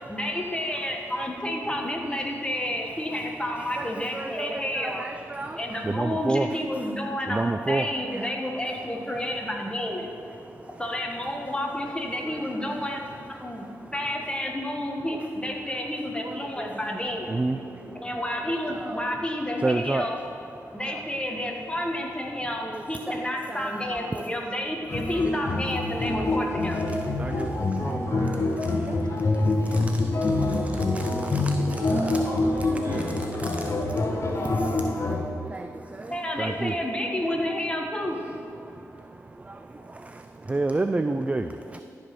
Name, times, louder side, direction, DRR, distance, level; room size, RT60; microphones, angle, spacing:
voice 1, 0.1-5.1 5.6-10.2 10.8-13.0 13.3-17.4 17.8-26.8 29.3-29.9 33.5-33.7 36.1-38.3 41.0-41.8, left 1 dB, 15° left, 1 dB, 1.4 m, -31 dB
voice 2, 3.8-5.6 5.9-6.5 7.3-7.9 8.1-8.2 17.3-17.6 18.8-19.0 19.6-20.1 22.7-22.8 23.1-23.2 23.5-24.2 26.1-26.2 27.2-27.5 27.8-28.0 28.9-29.0 30.9-31.1 31.3-31.4 31.8-31.9 35.5-35.7 36.4-36.7 40.5-41.5, right 2 dB, 20° right, 8 dB, 0.4 m, -28 dB
voice 3, 17.5-18.0 28.0-28.4 31.6-33.1, right 1 dB, 50° right, -2 dB, 2.4 m, -37 dB
sound 1, 24.9-35.2, left 2 dB, 50° left, 1.4 m, -26 dB
13.5 x 5.2 x 5.9 m, 2.7 s
cardioid pair, 65°, 6 cm